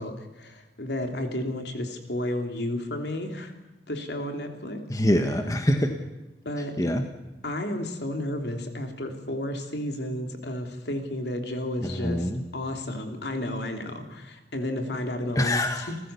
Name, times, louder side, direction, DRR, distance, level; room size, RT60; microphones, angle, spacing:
voice 1, 0.0-3.5 3.9-4.8 6.4-6.7 7.4-15.6 15.9-16.0, left 1 dB, 65° left, 4 dB, 3.2 m, -32 dB
voice 2, 4.9-5.9 6.8-7.0 11.8-12.4 15.3-15.9, left 1 dB, 20° left, 5 dB, 1.4 m, -24 dB
29.5 x 15.0 x 7.0 m, 1.1 s
head